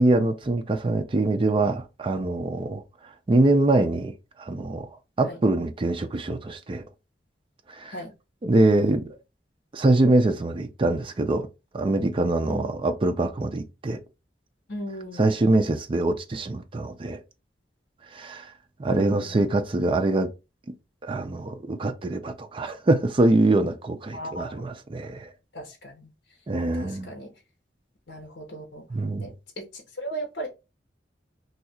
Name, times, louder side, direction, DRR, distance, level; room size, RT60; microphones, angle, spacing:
voice 1, 0.0-2.8 3.3-4.9 5.2-6.8 7.7-8.0 8.4-9.2 9.7-11.5 11.7-14.0 15.2-17.2 18.1-18.5 18.8-20.3 21.0-25.3 26.5-27.1 28.9-29.3, right 2 dB, 30° right, 0.4 m, -24 dB
voice 2, 12.5-12.9 14.7-15.3 18.9-19.4 24.1-24.6 25.5-26.1 26.7-27.3 28.1-28.8 29.2-30.5, equal, 75° left, 0.8 m, -37 dB
2.7 x 2.3 x 4.1 m
head